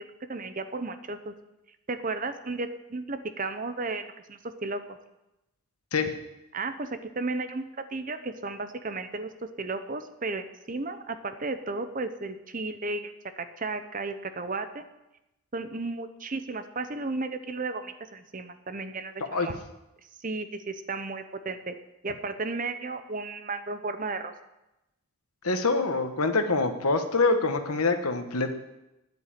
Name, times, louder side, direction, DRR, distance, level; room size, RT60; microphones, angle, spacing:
voice 1, 0.3-1.3 1.9-5.0 6.5-9.3 9.6-13.1 13.4-14.8 15.5-19.6 20.2-21.8 22.0-24.3, right 3 dB, 35° right, 9 dB, 0.8 m, -34 dB
voice 2, 25.4-28.5, left 3 dB, 85° left, 7 dB, 1.3 m, -25 dB
9.6 x 8.2 x 8.8 m, 0.94 s
head